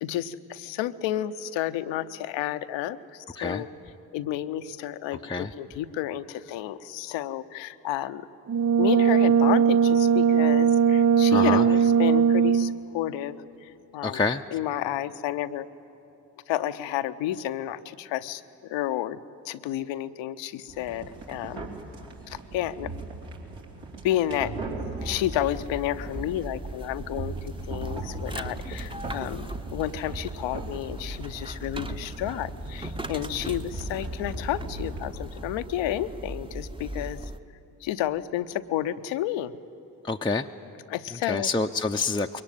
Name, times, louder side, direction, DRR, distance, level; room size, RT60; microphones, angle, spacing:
voice 1, 0.0-3.7 4.1-8.3 8.8-14.2 14.5-15.7 16.5-19.2 19.4-21.7 22.3-22.9 24.0-37.2 37.8-39.5 40.9-41.5, left 12 dB, 70° left, 12 dB, 0.8 m, -31 dB
Brass instrument, 8.5-12.8, right 7 dB, 40° right, 0.5 m, -20 dB
voice 2, 11.3-11.7 14.0-14.5 40.0-40.5 41.3-42.4, left 4 dB, 10° left, 3 dB, 0.6 m, -27 dB
sound 1, 20.7-35.0, right 2 dB, 70° right, 2.9 m, -39 dB
sound 2, 25.0-37.4, right 1 dB, 10° right, 0.9 m, -39 dB
22.0 x 18.5 x 9.1 m, 2.9 s
hypercardioid pair, 40°, 46 cm